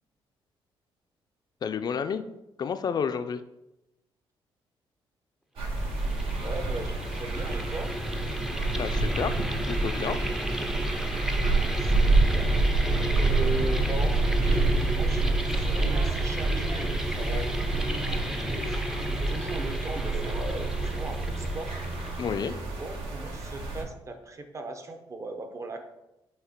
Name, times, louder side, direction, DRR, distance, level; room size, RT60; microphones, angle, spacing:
voice 1, 1.6-2.2 2.6-3.4 8.8-10.2 22.2-22.5, left 6 dB, 45° left, 10 dB, 0.4 m, -30 dB
sound 1, 5.6-23.8, right 3 dB, 70° right, 1.4 m, -28 dB
sound 2, 5.7-22.4, equal, 5° right, 0.5 m, -34 dB
voice 2, 6.4-7.9 11.8-12.6 13.1-17.5 18.1-21.8 22.5-25.8, right 2 dB, 30° right, 5 dB, 0.8 m, -38 dB
Laughter, 15.8-19.7 20.1-20.6, equal, 55° right, 2.2 m, -42 dB
6.5 x 2.9 x 5.0 m, 0.93 s
cardioid pair, 105°, 9 cm